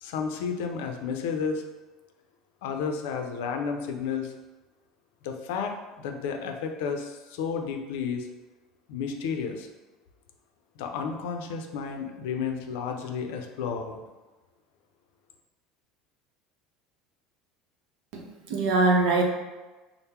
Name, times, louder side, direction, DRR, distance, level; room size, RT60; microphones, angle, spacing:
voice 1, 0.0-1.6 2.6-4.3 5.2-8.3 8.9-9.7 10.8-14.0, left 6 dB, 80° left, 4 dB, 0.5 m, -32 dB
voice 2, 18.1-19.2, right 3 dB, 70° right, 1 dB, 0.7 m, -23 dB
3.6 x 2.0 x 4.3 m, 1.2 s
supercardioid pair, 135°, 0 cm